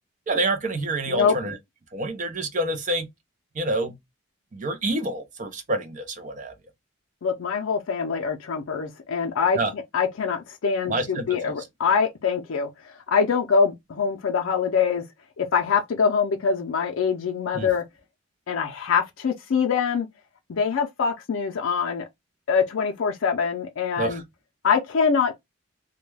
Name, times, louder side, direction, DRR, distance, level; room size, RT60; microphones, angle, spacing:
voice 1, 0.3-1.6 1.9-3.1 3.6-3.9 4.5-6.5 9.6-9.7 10.9-11.5 17.5-17.7 24.0-24.2, right 2 dB, 35° right, 0.5 m, -27 dB
voice 2, 7.2-12.7 13.1-15.0 15.4-17.8 18.5-20.1 20.5-22.0 22.5-24.2 24.6-25.3, left 6 dB, 70° left, 0.4 m, -24 dB
2.2 x 2.2 x 3.2 m
head